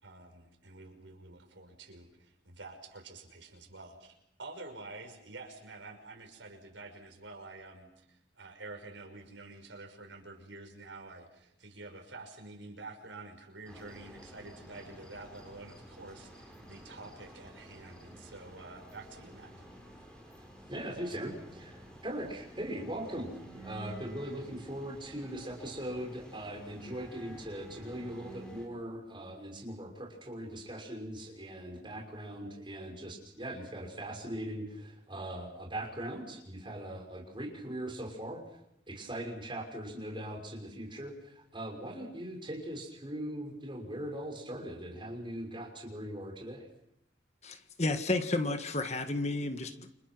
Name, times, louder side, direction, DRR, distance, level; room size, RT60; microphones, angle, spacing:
voice 1, 0.0-4.1 4.4-19.6, right 3 dB, 85° right, 6.0 m, -48 dB
sound 1, 13.6-28.7, right 1 dB, 5° left, 6.6 m, -51 dB
voice 2, 20.7-38.4 38.9-46.7, right 1 dB, 25° right, 6.1 m, -40 dB
voice 3, 47.4-49.9, left 2 dB, 35° left, 1.6 m, -32 dB
29.5 x 27.5 x 6.3 m
head